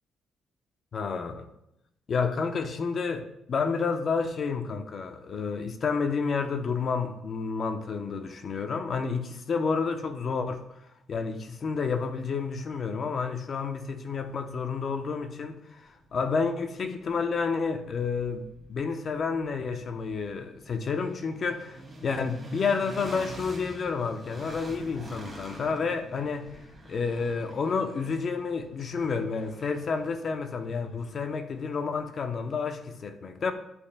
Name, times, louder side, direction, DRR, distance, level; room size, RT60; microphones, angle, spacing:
voice 1, 0.9-1.5 2.1-10.6 11.1-26.5 26.9-33.5, left 5 dB, 50° left, 0.7 m, -30 dB
sound 1, 15.4-15.5 16.0-32.0, right 1 dB, 10° right, 2.3 m, -47 dB
11.0 x 5.3 x 2.2 m
cardioid pair, 90°, 0 cm